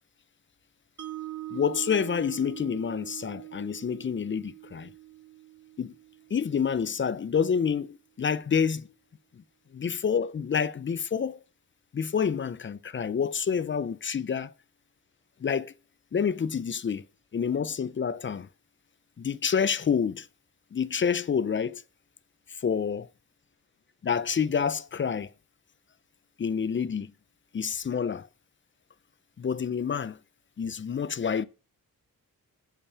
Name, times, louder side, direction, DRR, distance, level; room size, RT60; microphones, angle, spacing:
Mallet percussion, 1.0-7.1, right 15 dB, 55° right, 0.7 m, -43 dB
voice 1, 1.5-4.9 5.8-5.9 6.3-8.9 9.7-11.4 11.9-14.5 15.4-15.7 16.1-17.0 17.3-18.5 19.2-20.3 20.7-21.8 22.5-23.1 24.0-25.3 26.4-27.1 27.5-28.3 29.4-30.2 30.6-31.4, left 7 dB, 35° left, 0.4 m, -28 dB
8.4 x 5.5 x 5.5 m
wide cardioid pair, 145°, 36 cm